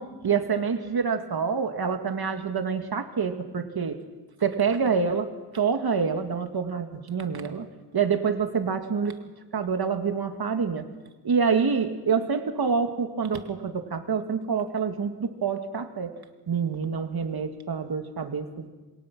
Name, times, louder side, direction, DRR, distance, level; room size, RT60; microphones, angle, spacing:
voice 1, 0.0-4.0 4.4-7.7 7.9-9.2 9.5-10.9 11.2-16.1 16.5-18.7, right 6 dB, 65° right, 6 dB, 2.1 m, -27 dB
27.5 x 22.0 x 6.1 m, 1.2 s
wide cardioid pair, 110°, 41 cm